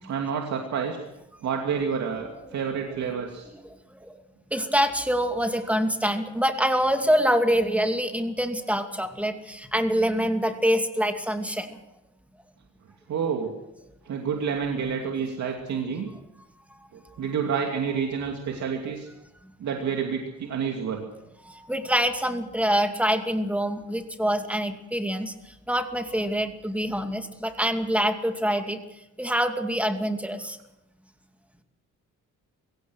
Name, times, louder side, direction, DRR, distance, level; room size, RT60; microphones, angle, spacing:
voice 1, 0.0-1.0 1.4-3.5 13.1-13.5 14.1-16.1 16.9-19.1 19.6-21.0, right 6 dB, 65° right, 2 dB, 2.6 m, -29 dB
voice 2, 4.5-11.8 21.5-25.3 25.7-28.8 29.2-30.6, equal, 5° right, 6 dB, 2.5 m, -25 dB
24.0 x 17.0 x 6.4 m, 0.92 s
cardioid pair, 90°, 30 cm